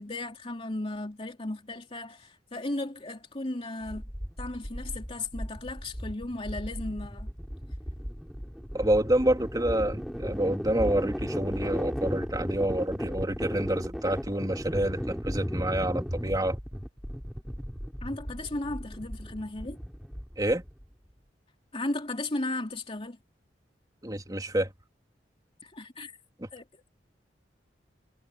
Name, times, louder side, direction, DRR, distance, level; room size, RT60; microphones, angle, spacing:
voice 1, 0.0-4.0 4.4-7.3 18.0-19.8 21.7-23.2 25.6-26.2 26.5-27.0, left 2 dB, 35° left, 2.9 m, -35 dB
sound 1, 3.8-20.8, equal, ahead, 7.3 m, -36 dB
voice 2, 8.7-16.6 20.4-20.6 24.0-24.7 26.4-26.5, right 1 dB, 20° right, 3.5 m, -28 dB
head